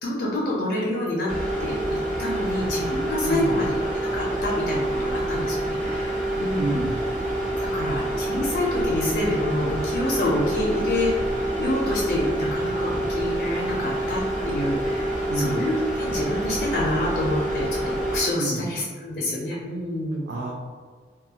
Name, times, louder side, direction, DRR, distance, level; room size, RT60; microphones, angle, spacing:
voice 1, 0.0-1.3 1.6-6.7 7.7-11.1 11.6-20.2, left 1 dB, 60° left, -5 dB, 0.4 m, -27 dB
sound 1, 1.3-18.2, right 1 dB, 45° right, 0.6 m, -27 dB
voice 2, 3.2-3.6 6.6-7.0 15.3-15.6 18.4-18.7 20.3-20.5, right 2 dB, 85° right, -4 dB, 0.4 m, -29 dB
2.4 x 2.3 x 2.7 m, 1.6 s
head